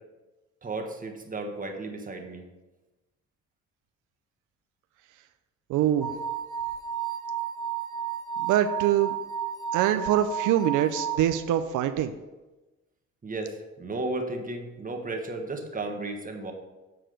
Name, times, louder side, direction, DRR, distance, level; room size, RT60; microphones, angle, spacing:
voice 1, 0.6-2.4 13.2-16.5, right 2 dB, 25° right, 3 dB, 1.3 m, -34 dB
voice 2, 5.7-6.1 8.4-9.1 9.7-12.1, right 11 dB, 85° right, 8 dB, 0.5 m, -24 dB
sound 1, 6.0-11.2, right 9 dB, 15° left, 0.9 m, -32 dB
7.6 x 4.7 x 5.1 m, 1.1 s
cardioid pair, 90°, 30 cm